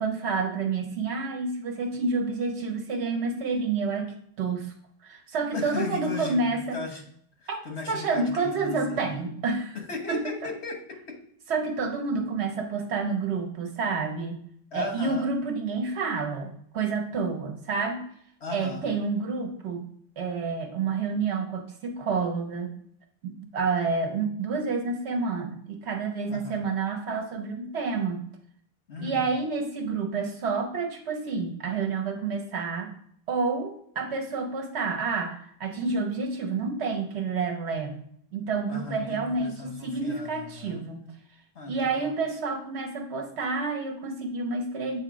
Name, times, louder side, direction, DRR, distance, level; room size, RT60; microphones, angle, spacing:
voice 1, 0.0-4.7 5.0-6.8 7.5-7.6 7.9-9.8 10.1-10.5 11.5-14.4 14.7-18.0 18.5-19.9 20.2-22.7 23.2-28.2 29.0-32.9 33.3-38.0 38.3-41.0 41.7-45.0, right 4 dB, 80° right, 4 dB, 1.2 m, -29 dB
voice 2, 5.5-7.1 7.4-9.0 9.7-11.2 14.7-15.3 18.4-18.9 26.3-26.6 28.9-29.3 38.7-40.8 41.5-42.2, left 4 dB, 75° left, 2 dB, 1.5 m, -37 dB
7.6 x 2.9 x 4.9 m, 0.66 s
omnidirectional pair, 1.1 m